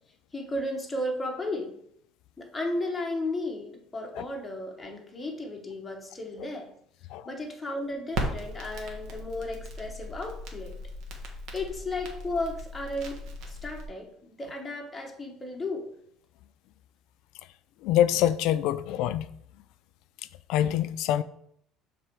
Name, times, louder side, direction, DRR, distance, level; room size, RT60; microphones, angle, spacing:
voice 1, 0.3-1.8 2.4-6.7 7.2-10.7 11.5-15.9, left 1 dB, 10° left, 0.9 m, -34 dB
Crackle, 8.1-13.9, right 1 dB, 60° right, 1.2 m, -37 dB
voice 2, 17.8-19.3 20.5-21.2, left 11 dB, 70° left, 0.3 m, -25 dB
6.7 x 3.3 x 4.4 m
cardioid pair, 165°, 0 cm